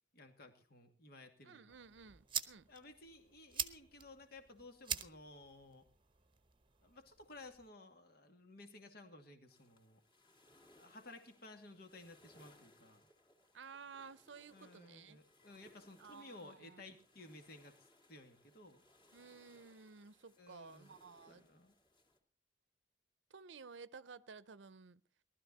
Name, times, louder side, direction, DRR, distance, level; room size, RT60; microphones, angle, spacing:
voice 1, 0.1-1.8 2.7-5.9 6.8-10.0 10.7-13.1 14.5-18.8 20.4-21.0 21.3-21.7, left 2 dB, 60° left, 2.3 m, -56 dB
voice 2, 1.4-2.7 13.5-15.2 16.0-17.0 19.1-21.4 23.3-25.0, right 5 dB, 90° right, 0.7 m, -55 dB
sound 1, 1.7-7.7, right 8 dB, 30° right, 0.9 m, -46 dB
sound 2, 9.5-22.2, left 1 dB, 30° left, 3.1 m, -68 dB
19.0 x 13.0 x 4.1 m
head